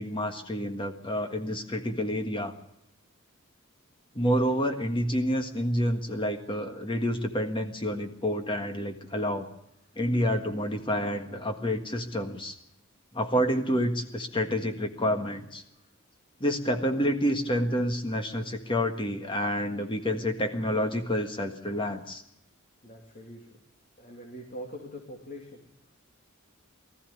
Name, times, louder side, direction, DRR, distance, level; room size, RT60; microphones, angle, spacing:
voice 1, 0.0-2.5 4.1-9.5 9.9-12.5 13.1-15.6 16.4-22.2, equal, 25° left, 5 dB, 1.6 m, -28 dB
voice 2, 22.8-23.6 24.0-25.9, equal, 40° left, 1 dB, 2.7 m, -44 dB
20.0 x 14.5 x 9.4 m, 0.83 s
head